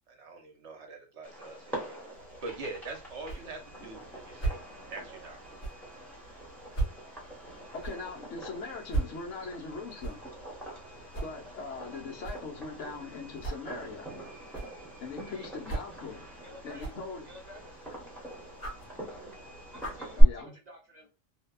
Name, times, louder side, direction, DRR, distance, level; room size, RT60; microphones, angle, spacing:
voice 1, 0.0-2.0 2.4-4.6 4.9-5.4, right 3 dB, 65° right, 1.0 m, -43 dB
Fireworks, 1.2-20.2, equal, ahead, 0.9 m, -37 dB
sound 1, 2.1-20.1, right 3 dB, 45° left, 1.3 m, -41 dB
voice 2, 7.7-10.3 11.2-14.1 15.0-16.2 16.6-17.3 20.2-20.5, left 4 dB, 70° left, 1.1 m, -40 dB
voice 3, 15.3-16.0 16.4-16.9 17.2-17.6 19.7-21.1, equal, 45° right, 0.6 m, -51 dB
2.8 x 2.1 x 2.2 m
omnidirectional pair, 1.3 m